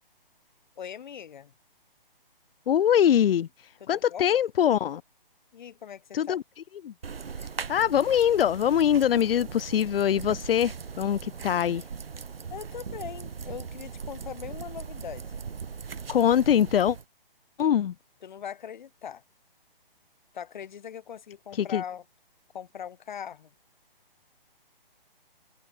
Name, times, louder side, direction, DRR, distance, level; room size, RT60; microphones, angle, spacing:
voice 1, 0.8-1.5 3.8-4.3 5.5-6.4 12.5-15.4 18.2-19.2 20.3-22.0 22.5-23.5, left 8 dB, 55° left, 3.4 m, -40 dB
voice 2, 2.7-3.5 3.9-5.0 6.1-6.4 6.8-6.9 7.7-11.8 16.1-17.0 17.6-17.9 21.6-21.8, left 9 dB, 75° left, 0.5 m, -23 dB
sound 1, 7.0-17.0, right 6 dB, 80° right, 1.2 m, -39 dB
open air
hypercardioid pair, 145°, 29 cm